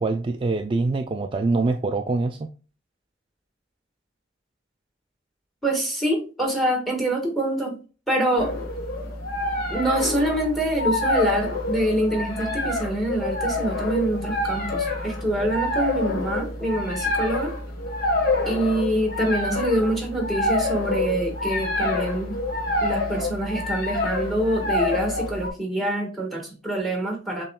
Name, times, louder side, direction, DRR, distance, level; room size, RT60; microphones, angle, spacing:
voice 1, 0.0-2.5, right 3 dB, 25° right, 0.3 m, -24 dB
voice 2, 5.6-7.8 8.1-8.5 9.7-17.5 18.4-22.4 22.8-27.4, right 1 dB, ahead, 1.6 m, -25 dB
sound 1, 8.4-25.5, left 2 dB, 50° left, 1.5 m, -27 dB
7.0 x 3.1 x 2.3 m
head